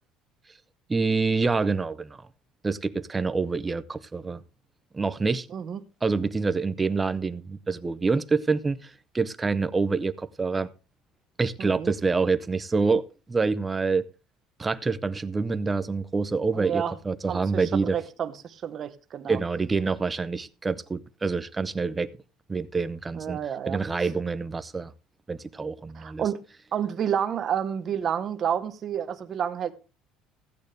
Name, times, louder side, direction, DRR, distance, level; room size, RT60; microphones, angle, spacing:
voice 1, 0.9-2.2 2.6-4.4 4.9-5.5 6.0-10.7 11.4-14.1 14.6-18.0 19.3-22.1 22.5-23.4 23.7-24.9 25.3-26.2, right 4 dB, 15° right, 0.5 m, -26 dB
voice 2, 5.5-5.8 11.6-11.9 16.5-16.9 17.3-19.4 23.1-23.8 25.9-26.4 26.7-29.7, right 8 dB, 30° right, 1.0 m, -30 dB
15.5 x 8.8 x 3.3 m
cardioid pair, 170°, 0 cm